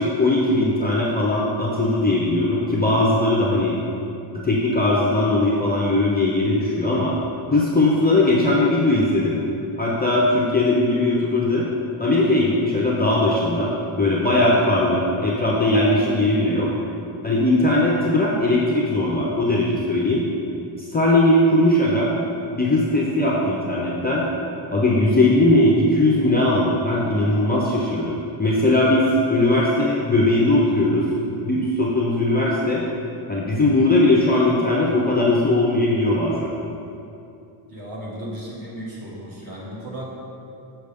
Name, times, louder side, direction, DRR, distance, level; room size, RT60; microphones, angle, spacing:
voice 1, 0.0-3.8 4.4-7.2 7.5-9.4 9.8-11.7 12.0-16.7 17.2-20.2 20.8-22.1 22.5-24.3 24.7-31.1 31.4-32.8 33.3-36.5, left 1 dB, 20° left, -4 dB, 0.4 m, -19 dB
voice 2, 37.7-40.1, right 1 dB, 45° right, -5 dB, 1.4 m, -35 dB
6.5 x 5.8 x 3.4 m, 2.7 s
cardioid pair, 175°, 49 cm